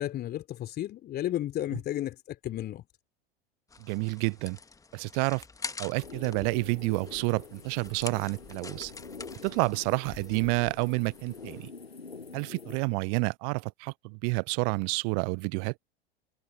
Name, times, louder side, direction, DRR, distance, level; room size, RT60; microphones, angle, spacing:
voice 1, 0.0-2.8, left 13 dB, 35° left, 3.2 m, -33 dB
sound 1, 3.7-11.7, left 4 dB, 10° left, 1.5 m, -46 dB
voice 2, 3.8-4.6 4.9-5.4 5.8-8.9 9.4-11.7 12.3-15.7, right 40 dB or more, 40° right, 0.8 m, -29 dB
sound 2, 6.0-12.8, left 4 dB, 85° left, 1.5 m, -46 dB
figure-of-eight pair, 85°, 30 cm